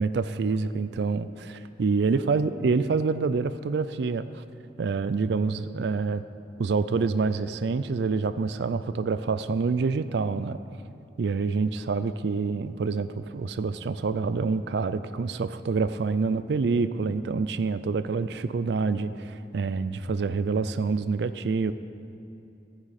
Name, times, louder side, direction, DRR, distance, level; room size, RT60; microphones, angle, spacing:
voice 1, 0.0-4.4 4.8-6.2 6.6-10.6 11.2-21.7, right 4 dB, 70° right, 12 dB, 0.4 m, -27 dB
15.5 x 9.8 x 4.2 m, 2.8 s
head